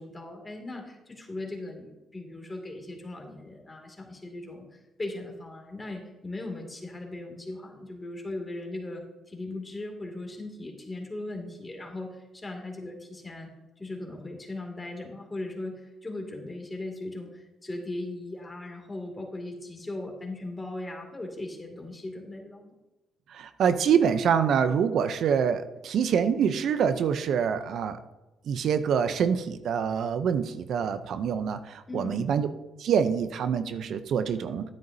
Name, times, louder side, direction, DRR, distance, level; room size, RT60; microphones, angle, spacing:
voice 1, 0.0-1.9 2.1-13.5 13.8-22.7 31.9-32.2, left 2 dB, 20° left, 2 dB, 2.4 m, -38 dB
voice 2, 23.3-28.0 28.5-32.5 32.8-34.6, right 7 dB, 70° right, 10 dB, 0.6 m, -25 dB
11.0 x 9.3 x 2.7 m, 1.1 s
cardioid pair, 90°, 0 cm